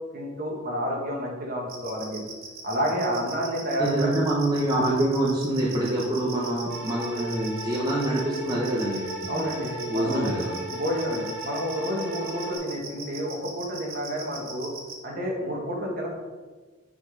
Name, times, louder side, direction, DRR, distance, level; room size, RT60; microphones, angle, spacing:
voice 1, 0.1-2.2 2.6-4.1 9.3-10.3 10.7-14.7 15.0-16.1, equal, 45° right, -2 dB, 1.8 m, -29 dB
sound 1, 1.7-14.9, right 5 dB, 85° right, 1.4 m, -40 dB
voice 2, 3.8-9.5 9.9-10.5, right 1 dB, 20° right, -5 dB, 1.0 m, -26 dB
sound 2, 6.7-12.6, right 2 dB, 65° right, 2.6 m, -37 dB
8.8 x 4.2 x 5.2 m, 1.3 s
head